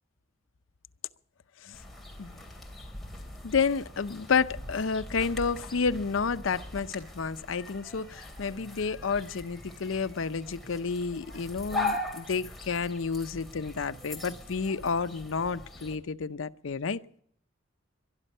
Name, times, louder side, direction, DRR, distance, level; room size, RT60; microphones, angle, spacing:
sound 1, 1.7-16.0, left 2 dB, ahead, 3.0 m, -40 dB
voice 1, 3.4-17.0, left 5 dB, 85° left, 0.6 m, -30 dB
22.0 x 12.0 x 5.4 m
head